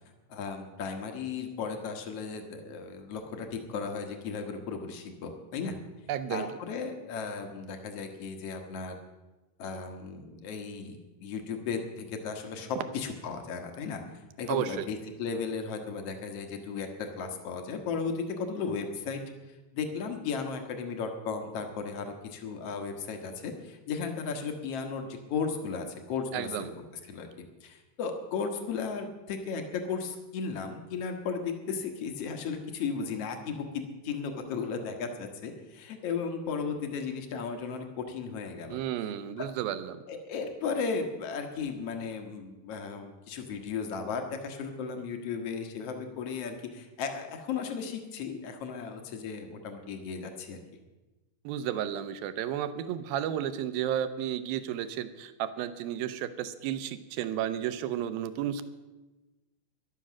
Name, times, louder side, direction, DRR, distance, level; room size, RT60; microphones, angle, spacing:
voice 1, 0.3-5.8 6.3-9.0 9.6-14.0 14.4-19.2 19.7-26.7 27.1-27.3 27.6-38.8 39.4-39.5 40.1-50.6, left 5 dB, 70° left, 5 dB, 1.5 m, -35 dB
voice 2, 6.1-6.5 14.5-14.8 26.3-26.7 38.7-40.0 51.4-58.6, right 10 dB, 80° right, 12 dB, 2.3 m, -32 dB
14.0 x 11.5 x 6.2 m, 1.1 s
omnidirectional pair, 4.8 m